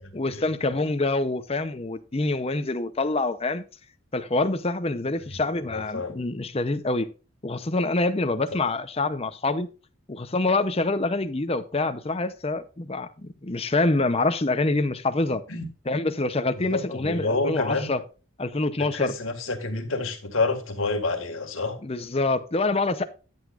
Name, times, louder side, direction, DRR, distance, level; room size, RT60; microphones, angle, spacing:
voice 1, 0.1-3.6 4.1-7.1 7.4-9.7 10.1-15.4 15.9-18.0 18.4-19.1 21.8-23.0, left 2 dB, 25° left, 0.7 m, -26 dB
voice 2, 5.7-6.2 15.5-15.6 16.7-17.9 18.8-21.8, left 3 dB, 65° left, 2.0 m, -28 dB
13.0 x 8.1 x 2.4 m
head